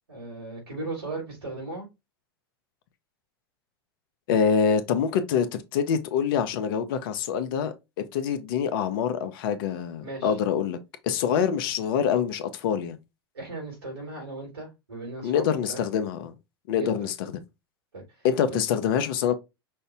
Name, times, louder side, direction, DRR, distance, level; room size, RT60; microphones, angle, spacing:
voice 1, 0.1-1.9 10.0-10.4 11.3-11.4 13.3-15.8 16.7-17.1 17.9-18.6, right 2 dB, 85° right, 3.3 m, -37 dB
voice 2, 4.3-7.7 8.1-10.8 11.0-13.0 15.2-16.3 16.7-17.1 18.2-19.3, left 7 dB, 65° left, 0.9 m, -25 dB
5.5 x 2.7 x 3.4 m
hypercardioid pair, 100°, 13 cm